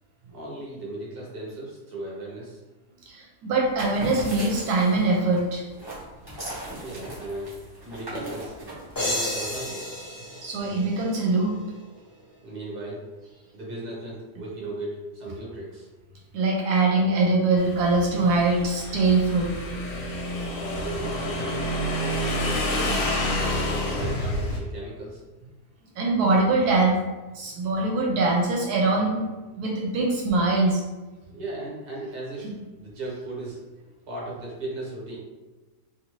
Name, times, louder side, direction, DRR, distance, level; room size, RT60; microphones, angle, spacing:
voice 1, 0.3-2.6 6.8-8.6 8.9-9.9 12.4-13.1 13.5-15.9 20.3-21.7 22.1-25.2 31.3-33.6 34.1-35.2, right 2 dB, 40° right, -4 dB, 1.0 m, -37 dB
voice 2, 3.1-5.7 10.4-11.6 16.3-19.5 23.3-23.4 26.0-27.0 27.3-29.3 29.6-30.8, right 3 dB, 75° right, -2 dB, 1.1 m, -23 dB
sound 1, 3.6-9.7, right 1 dB, 20° right, 0.6 m, -38 dB
sound 2, 9.0-11.6, left 1 dB, 30° left, 0.4 m, -32 dB
Motorcycle / Engine, 17.6-24.6, left 1 dB, 70° left, 1.1 m, -28 dB
2.7 x 2.6 x 3.0 m, 1.2 s
omnidirectional pair, 1.7 m